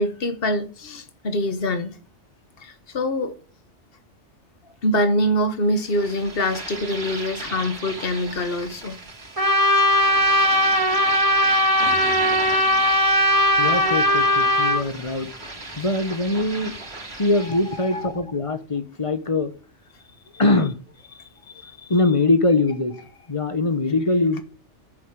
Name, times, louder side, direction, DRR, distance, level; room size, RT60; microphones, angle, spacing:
voice 1, 0.0-1.9 2.6-3.3 4.8-9.0 11.8-11.9 21.6-21.7, left 1 dB, 50° left, 1.6 m, -24 dB
sound 1, 5.7-18.0, right 2 dB, 55° right, 3.2 m, -36 dB
Trumpet, 9.4-14.8, equal, 30° right, 2.1 m, -19 dB
voice 2, 13.6-16.8 17.2-19.5 20.4-20.8 21.9-22.9 23.3-24.4, left 2 dB, 30° left, 1.2 m, -22 dB
10.5 x 8.3 x 7.4 m
omnidirectional pair, 1.3 m